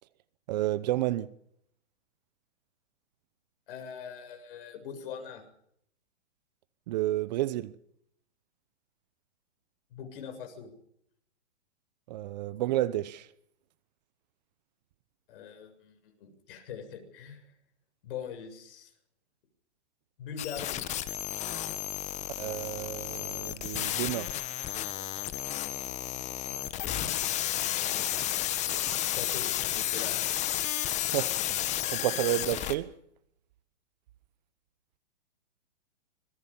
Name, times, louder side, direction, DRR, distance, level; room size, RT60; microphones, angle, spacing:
voice 1, 0.5-1.3 6.9-7.8 12.1-13.3 22.4-24.3 31.0-32.9, right 15 dB, 35° right, 0.9 m, -31 dB
voice 2, 3.7-5.4 9.9-10.7 15.3-17.5 18.0-18.9 20.2-20.8 27.7-28.2 28.9-30.3, left 7 dB, 50° left, 7.3 m, -42 dB
sound 1, 20.4-32.7, left 13 dB, 20° left, 1.5 m, -32 dB
26.0 x 21.5 x 5.5 m
hypercardioid pair, 145°, 36 cm